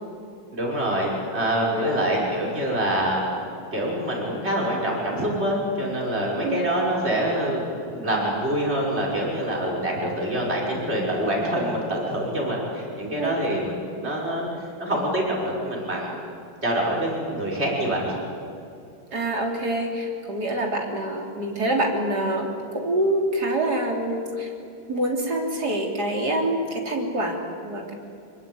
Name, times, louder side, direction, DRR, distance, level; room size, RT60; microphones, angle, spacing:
voice 1, 0.5-3.2 3.7-7.6 7.9-14.5 14.8-16.3 16.6-18.1, right 1 dB, 30° right, -3 dB, 6.1 m, -25 dB
voice 2, 1.7-2.1 6.4-6.6 13.2-13.4 19.1-24.5 24.9-27.9, right 1 dB, 50° right, 1 dB, 4.0 m, -26 dB
26.0 x 23.0 x 9.5 m, 2.6 s
omnidirectional pair, 2.2 m